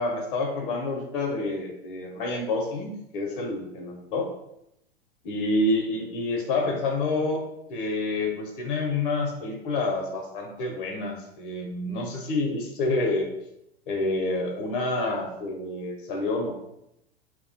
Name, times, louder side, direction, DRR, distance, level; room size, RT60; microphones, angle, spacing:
voice 1, 0.0-4.3 5.2-7.4 7.7-13.3 13.9-16.5, left 2 dB, 60° left, 2 dB, 0.6 m, -28 dB
2.2 x 2.1 x 2.6 m, 0.81 s
hypercardioid pair, 100°, 30 cm